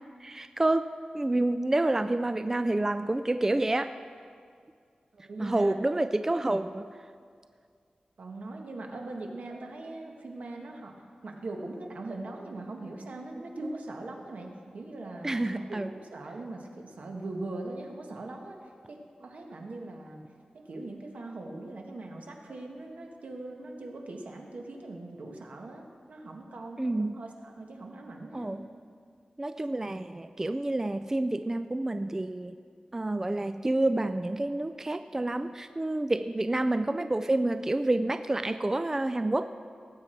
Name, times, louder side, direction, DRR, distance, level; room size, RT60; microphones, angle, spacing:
voice 1, 0.2-3.9 5.4-6.9 15.2-15.9 26.8-27.2 28.3-28.7 29.4-32.6 32.9-39.5, right 2 dB, 20° right, 10 dB, 0.3 m, -28 dB
voice 2, 5.1-5.8 8.2-10.9 11.2-18.6 18.9-20.2 20.5-28.5, right 2 dB, 75° right, 2 dB, 1.5 m, -41 dB
18.5 x 8.2 x 4.5 m, 2.2 s
wide cardioid pair, 120°, 3 cm